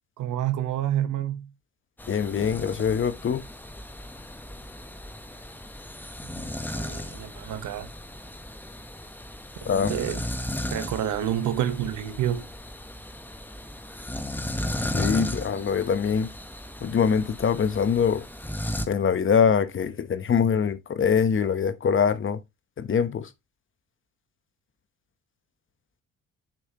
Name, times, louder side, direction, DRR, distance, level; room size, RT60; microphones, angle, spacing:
voice 1, 0.2-1.5 6.2-7.9 9.9-10.3 10.7-12.5, right 11 dB, 75° right, 1.1 m, -29 dB
sound 1, 2.0-18.9, left 1 dB, 5° left, 0.9 m, -35 dB
voice 2, 2.1-3.4 9.6-9.9 14.9-16.3 16.8-18.3 18.9-22.4 22.8-23.3, left 7 dB, 40° left, 0.9 m, -23 dB
7.1 x 5.7 x 2.9 m
cardioid pair, 90°, 30 cm